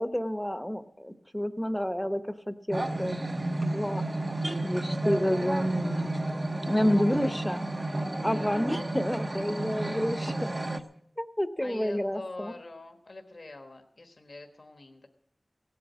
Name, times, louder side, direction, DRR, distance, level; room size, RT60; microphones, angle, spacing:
voice 1, 0.0-3.2 3.6-4.0 4.6-6.1 6.7-7.6 8.2-10.3 11.2-12.5, equal, 5° left, 10 dB, 0.8 m, -29 dB
sound 1, 2.7-10.8, right 2 dB, 40° right, 0.8 m, -32 dB
voice 2, 7.1-7.6 8.2-8.6 11.6-15.1, left 2 dB, 65° left, 5 dB, 1.2 m, -45 dB
16.5 x 8.6 x 7.3 m, 0.72 s
wide cardioid pair, 75°, 0 cm